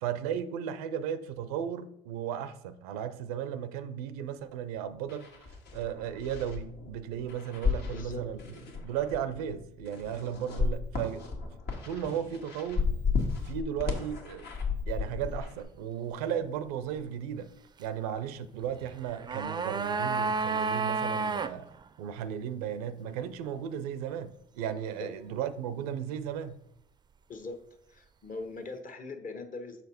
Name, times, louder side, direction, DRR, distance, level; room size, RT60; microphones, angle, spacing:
voice 1, 0.0-5.3 5.7-8.4 8.8-11.3 11.9-12.9 13.4-14.5 14.9-17.5 17.8-21.7 22.0-26.6, right 9 dB, 85° right, 0.4 m, -35 dB
sound 1, 4.7-4.8 5.1-15.6, left 5 dB, 65° left, 1.4 m, -34 dB
voice 2, 7.9-8.3 25.0-25.1 27.3-27.6 27.9-29.8, left 3 dB, 45° left, 1.2 m, -40 dB
sound 2, 18.9-21.5 21.8-21.9, right 4 dB, 25° right, 0.4 m, -30 dB
6.2 x 4.2 x 4.2 m
hypercardioid pair, 55°, 18 cm